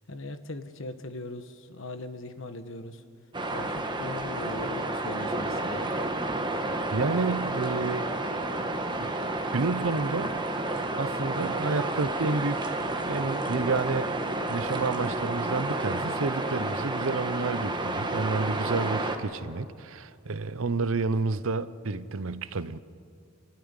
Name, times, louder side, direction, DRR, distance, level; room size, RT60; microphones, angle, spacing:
voice 1, 0.1-3.0 3.5-5.9, left 2 dB, 60° left, 1.3 m, -39 dB
sound 1, 3.3-19.2, right 2 dB, 20° right, 1.3 m, -30 dB
voice 2, 6.9-8.1 9.0-9.1 9.5-10.4 11.0-12.8 13.1-14.1 14.5-22.8, right 3 dB, 65° right, 0.7 m, -30 dB
27.5 x 13.0 x 9.8 m
head